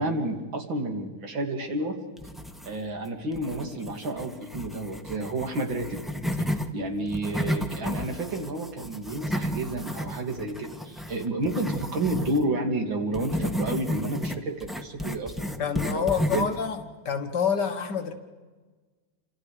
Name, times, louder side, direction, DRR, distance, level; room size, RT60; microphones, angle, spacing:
voice 1, 0.0-2.0 2.7-6.0 6.4-16.1 16.3-16.5, right 2 dB, 60° right, 4 dB, 3.3 m, -30 dB
sound 1, 2.2-3.0 3.3-6.7 7.1-12.4 13.1-16.6, equal, ahead, 0.8 m, -32 dB
voice 2, 15.6-16.8 17.1-18.1, left 7 dB, 55° left, 7 dB, 1.8 m, -27 dB
29.5 x 27.0 x 5.0 m, 1.3 s
omnidirectional pair, 2.4 m